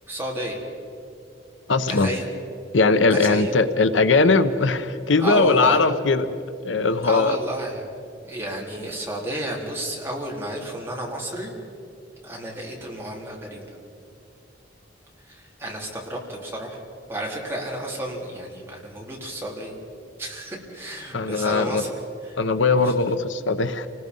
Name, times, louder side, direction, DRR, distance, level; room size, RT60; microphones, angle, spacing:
voice 1, 0.1-0.6 1.9-2.3 3.1-3.6 5.2-5.8 7.0-7.9 8.3-11.5 12.2-13.6 15.2-16.8 17.1-19.8 20.2-22.4 22.8-22.9, right 1 dB, 15° right, -3 dB, 3.9 m, -31 dB
voice 2, 1.7-2.1 2.7-6.3 6.6-7.4 21.1-21.8 22.4-23.9, left 3 dB, 80° left, 10 dB, 1.0 m, -20 dB
28.5 x 20.0 x 5.5 m, 2.6 s
head